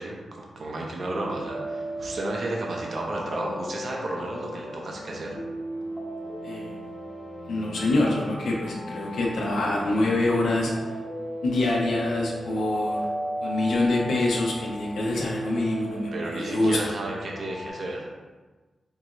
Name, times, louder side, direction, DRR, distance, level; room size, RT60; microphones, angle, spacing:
voice 1, 0.0-5.4 16.1-18.1, right 2 dB, 65° right, -1 dB, 0.7 m, -33 dB
sound 1, 1.1-17.7, equal, 35° left, 0.9 m, -35 dB
voice 2, 6.4-6.7 7.5-10.7 11.4-13.1 13.4-16.8, left 2 dB, 85° left, -2 dB, 0.8 m, -25 dB
4.7 x 2.5 x 3.0 m, 1.3 s
cardioid pair, 80°, 0 cm